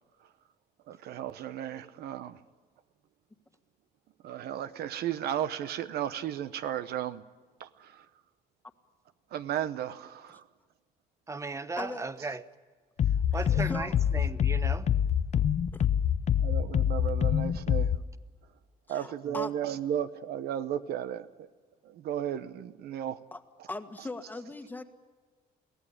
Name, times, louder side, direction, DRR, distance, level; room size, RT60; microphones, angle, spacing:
voice 1, 0.9-2.4 4.2-7.2 7.6-8.0 9.3-10.4 13.5-13.6 16.4-17.9 18.9-21.3 21.9-23.2, right 10 dB, 70° right, 0.9 m, -34 dB
voice 2, 11.3-12.4 13.3-14.9 19.2-19.3, right 3 dB, 15° right, 1.0 m, -36 dB
sound 1, 13.0-18.0, left 9 dB, 40° left, 0.7 m, -26 dB
voice 3, 13.3-13.9 15.7-15.9 18.9-19.5 23.3-23.4 23.7-24.8, left 2 dB, 10° left, 1.6 m, -39 dB
23.0 x 16.5 x 9.8 m
cardioid pair, 110°, 17 cm